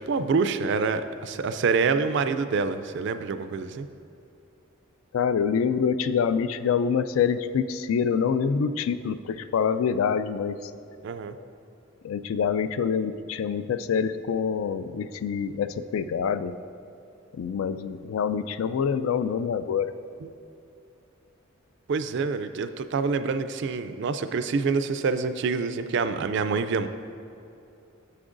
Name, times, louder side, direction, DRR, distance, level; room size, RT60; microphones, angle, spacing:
voice 1, 0.0-3.9 11.0-11.4 21.9-26.9, right 4 dB, 55° right, 11 dB, 0.4 m, -26 dB
voice 2, 5.1-10.6 11.3-11.5 12.0-16.5 17.3-19.9, left 6 dB, 75° left, 12 dB, 0.3 m, -26 dB
9.8 x 7.6 x 2.5 m, 2.7 s
head